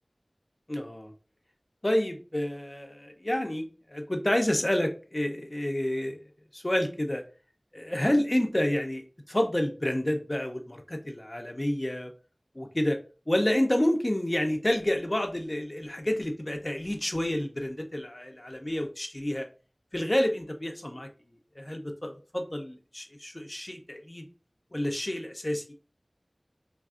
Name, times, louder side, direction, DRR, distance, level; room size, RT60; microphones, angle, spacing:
voice 1, 0.7-1.1 1.8-6.2 6.5-7.2 7.7-12.1 12.6-13.0 13.3-19.5 19.9-21.1 21.5-24.2 24.7-25.7, left 1 dB, 35° left, 4 dB, 0.4 m, -29 dB
3.3 x 2.3 x 2.4 m, 0.35 s
wide cardioid pair, 45°, 0 cm